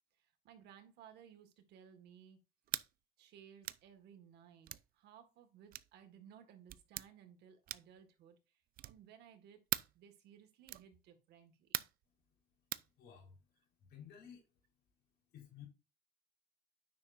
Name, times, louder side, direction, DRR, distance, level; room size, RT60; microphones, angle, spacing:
voice 1, 0.1-2.4 3.2-9.6 9.9-11.8, right 8 dB, 80° right, 6 dB, 1.8 m, -60 dB
sound 1, 2.7-2.9 3.6-3.9 4.7-4.9 5.7-5.9 6.7-7.1 7.7-8.0 8.7-9.1 9.7-10.0 10.7-10.9 11.7-12.0 12.7-12.9, right 14 dB, 60° right, 0.4 m, -40 dB
voice 2, 13.0-14.4 15.3-15.7, left 8 dB, 75° left, -1 dB, 4.0 m, -55 dB
9.5 x 6.4 x 2.6 m, 0.30 s
cardioid pair, 110°, 17 cm